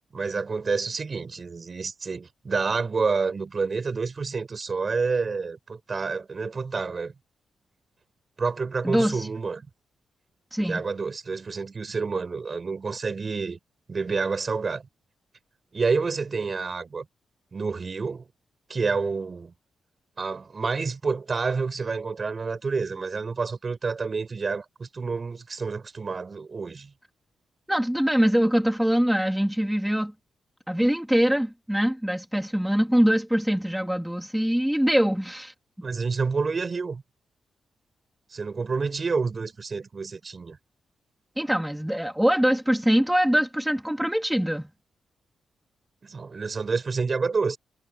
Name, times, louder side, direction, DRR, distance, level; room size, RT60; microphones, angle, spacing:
voice 1, 0.1-7.1 8.4-9.7 10.6-13.6 13.9-14.9 15.7-17.0 17.5-18.3 18.7-19.5 20.2-26.9 35.8-37.0 38.3-40.6 46.0-47.6, right 4 dB, 45° right, 4.9 m, -28 dB
voice 2, 8.8-9.3 10.5-10.8 27.7-30.1 30.7-35.5 41.4-44.7, equal, 5° right, 1.8 m, -23 dB
cardioid pair, 65°, 0 cm